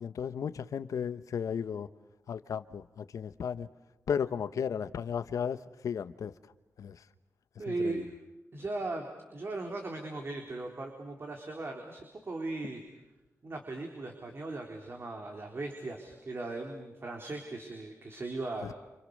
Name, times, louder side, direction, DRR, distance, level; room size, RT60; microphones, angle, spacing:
voice 1, 0.0-1.9 2.3-3.7 4.1-5.6 5.8-6.3 6.8-7.0 7.7-8.0 18.6-18.7, left 7 dB, 85° left, 12 dB, 1.1 m, -34 dB
voice 2, 7.6-8.1 8.5-12.8 13.4-18.7, right 2 dB, 45° right, 3 dB, 4.1 m, -38 dB
29.5 x 28.0 x 6.7 m, 1.0 s
cardioid pair, 85°, 6 cm